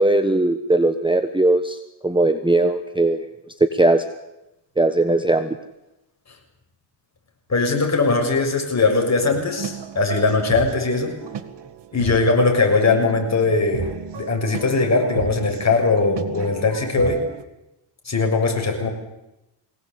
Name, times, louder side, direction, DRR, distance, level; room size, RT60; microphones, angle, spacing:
voice 1, 0.0-3.3 3.7-4.0 4.8-5.6, right 2 dB, 10° right, 9 dB, 1.2 m, -19 dB
voice 2, 7.5-11.1 11.9-13.9 14.2-17.2 18.1-18.9, left 3 dB, 35° left, 2 dB, 6.9 m, -20 dB
sound 1, 9.2-17.4, right 8 dB, 60° right, 2.0 m, -34 dB
23.5 x 18.0 x 8.5 m, 0.93 s
cardioid pair, 95°, 48 cm